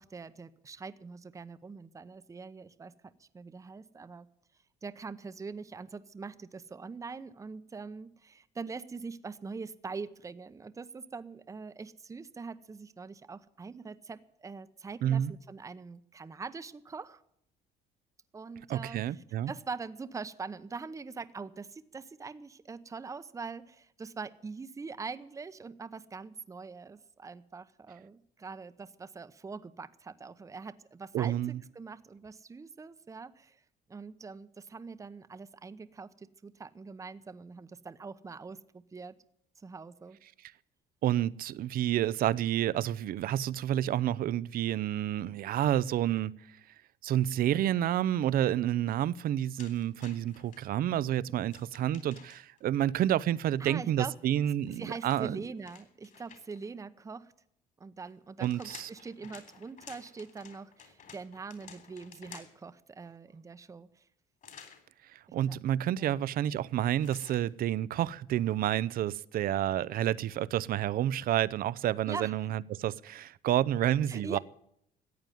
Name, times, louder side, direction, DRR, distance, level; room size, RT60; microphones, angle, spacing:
voice 1, 0.0-4.3 4.8-17.2 18.3-33.6 33.9-39.1 39.6-40.2 53.6-54.1 54.8-57.3 57.8-64.0 65.5-65.6 65.9-66.2 72.1-72.3 74.1-74.4, right 4 dB, 20° right, 0.7 m, -43 dB
voice 2, 15.0-15.3 18.7-19.5 31.1-31.6 41.0-46.3 47.0-55.4 58.4-58.9 65.1-74.4, right 12 dB, 60° right, 0.6 m, -29 dB
sound 1, 49.6-50.6 51.5-52.6 54.4-56.7 58.1-62.7 64.4-64.8 67.0-67.5, left 7 dB, 50° left, 3.7 m, -53 dB
14.5 x 8.9 x 9.3 m
cardioid pair, 110°, 17 cm